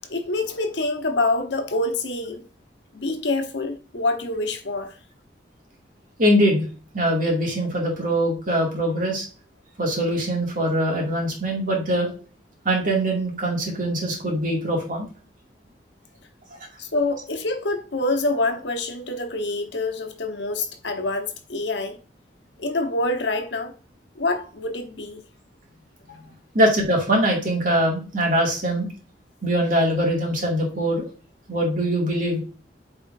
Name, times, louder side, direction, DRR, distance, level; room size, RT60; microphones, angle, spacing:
voice 1, 0.1-2.4 2.9-5.0 16.8-22.0 22.6-23.7 24.1-25.2 26.1-26.2, left 2 dB, 80° left, 1.1 m, -26 dB
voice 2, 6.2-6.6 6.9-9.3 9.8-12.1 12.6-15.1 16.5-16.6 26.5-28.9 29.4-31.0 31.5-32.4, equal, 50° right, 2.3 m, -22 dB
8.7 x 4.4 x 2.6 m
head